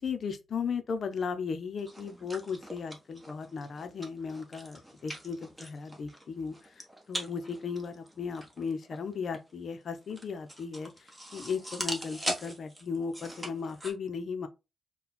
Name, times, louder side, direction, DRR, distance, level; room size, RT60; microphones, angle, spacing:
voice 1, 0.0-14.5, left 5 dB, 60° left, 0.7 m, -36 dB
sound 1, 1.8-13.9, right 1 dB, 10° right, 1.3 m, -41 dB
4.3 x 2.3 x 4.0 m
cardioid pair, 95°, 0 cm